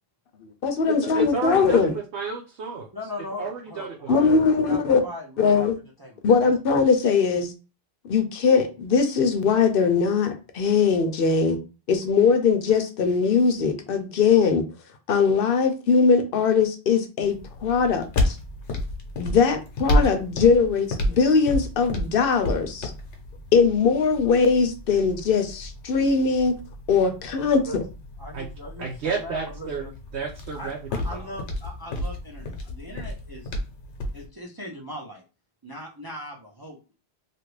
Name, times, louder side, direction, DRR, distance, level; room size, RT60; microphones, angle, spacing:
voice 1, 0.6-1.9 4.1-5.0 5.4-5.7 6.2-7.5 8.1-11.6 11.9-14.6 15.1-18.4 19.2-22.9 23.5-26.5 26.9-27.8, left 5 dB, 60° left, 0.8 m, -21 dB
voice 2, 1.1-2.9 3.4-4.7 28.3-28.5 28.8-29.9 30.1-31.2, right 4 dB, 75° right, 0.9 m, -32 dB
voice 3, 2.9-4.2 4.5-5.7 6.0-6.5 27.5-27.8 28.2-29.9 30.5-33.5 34.1-35.2 35.6-36.8, left 1 dB, 30° right, 0.4 m, -39 dB
sound 1, 17.2-34.3, left 1 dB, 90° left, 1.0 m, -31 dB
2.9 x 2.5 x 3.1 m
omnidirectional pair, 1.1 m